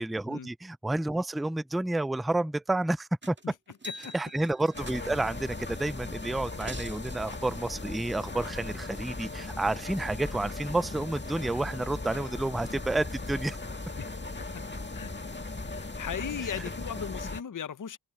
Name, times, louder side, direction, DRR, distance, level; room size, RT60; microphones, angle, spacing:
voice 1, 0.0-3.4 4.1-13.6, right 2 dB, ahead, 0.4 m, -30 dB
sound 1, 3.2-3.5 3.7-5.4 6.3-7.2 9.3-9.4 9.8-10.3 11.3-11.4, equal, 25° right, 1.7 m, -45 dB
sound 2, 4.7-17.4, left 2 dB, 25° left, 1.9 m, -38 dB
voice 2, 14.9-18.0, left 8 dB, 45° left, 0.7 m, -38 dB
open air
wide cardioid pair, 85°, 43 cm